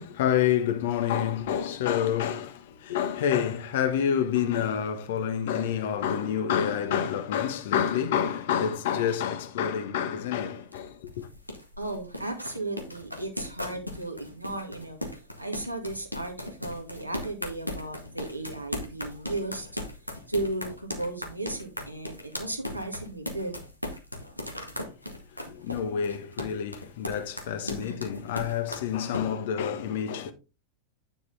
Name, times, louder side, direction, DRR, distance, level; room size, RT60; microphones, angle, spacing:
voice 1, 0.0-11.3 25.5-30.3, left 9 dB, 55° left, 1.5 m, -28 dB
sound 1, 10.2-29.2, left 1 dB, 90° left, 1.8 m, -38 dB
voice 2, 11.8-15.0 15.4-19.7 20.3-23.6 27.6-28.1, right 2 dB, 90° right, 2.2 m, -35 dB
9.7 x 6.9 x 3.5 m
figure-of-eight pair, 90°, 0 cm